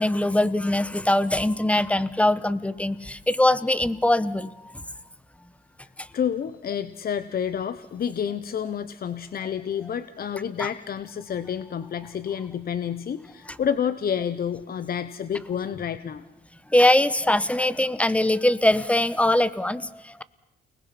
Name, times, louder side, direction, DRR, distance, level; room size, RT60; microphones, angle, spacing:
voice 1, 0.0-4.5 6.0-6.1 16.7-20.2, left 1 dB, 5° left, 16 dB, 1.1 m, -22 dB
voice 2, 6.1-16.2, left 8 dB, 50° left, 13 dB, 0.9 m, -29 dB
29.5 x 20.0 x 5.9 m, 0.94 s
cardioid pair, 90°, 20 cm